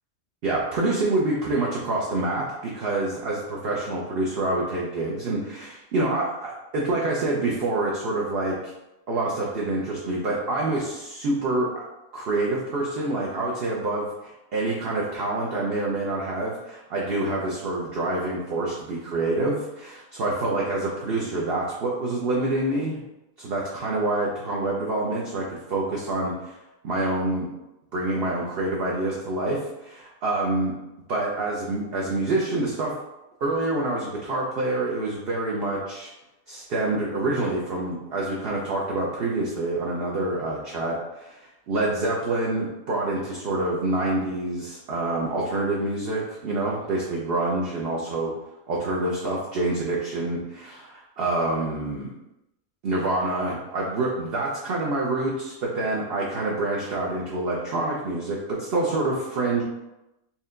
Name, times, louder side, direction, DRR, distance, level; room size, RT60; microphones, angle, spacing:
voice 1, 0.4-8.6 9.1-11.8 12.1-23.0 23.4-26.5 26.8-27.5 27.9-30.7 31.1-33.0 33.4-36.1 36.5-48.3 48.7-52.1 52.8-59.6, right 2 dB, 55° right, -3 dB, 0.7 m, -27 dB
4.4 x 2.2 x 3.6 m, 0.94 s
omnidirectional pair, 1.5 m